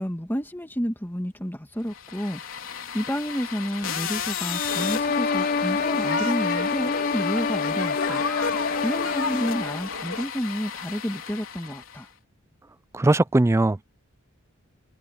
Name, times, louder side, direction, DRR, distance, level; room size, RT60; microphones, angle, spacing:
voice 1, 0.0-8.2 8.6-12.1, equal, 10° left, 2.2 m, -30 dB
sound 1, 1.9-12.1, left 7 dB, 70° left, 4.0 m, -35 dB
sound 2, 4.5-9.9, left 4 dB, 50° left, 0.8 m, -27 dB
sound 3, 4.7-10.3, left 4 dB, 85° left, 3.3 m, -32 dB
voice 2, 12.9-13.8, right 2 dB, 15° right, 0.3 m, -20 dB
head